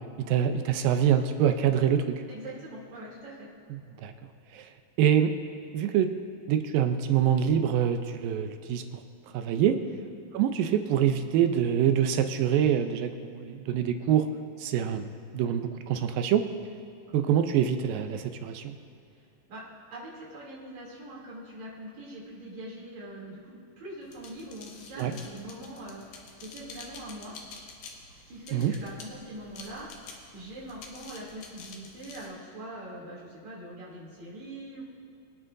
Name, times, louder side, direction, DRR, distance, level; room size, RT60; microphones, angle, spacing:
voice 1, 0.3-2.2 3.7-4.1 4.5-4.7 5.0-5.3 5.7-6.1 6.5-8.8 9.3-9.8 10.3-14.3 14.6-16.5 17.1-18.8 25.0-25.1 28.5-28.7, right 9 dB, 85° right, 7 dB, 2.5 m, -25 dB
voice 2, 2.3-3.5 9.9-10.1 19.5-19.6 19.9-27.3 28.1-34.8, right 1 dB, 55° right, -7 dB, 4.2 m, -43 dB
sound 1, 24.0-32.3, left 4 dB, 85° left, 2.9 m, -48 dB
23.5 x 9.7 x 2.7 m, 2.7 s
omnidirectional pair, 4.0 m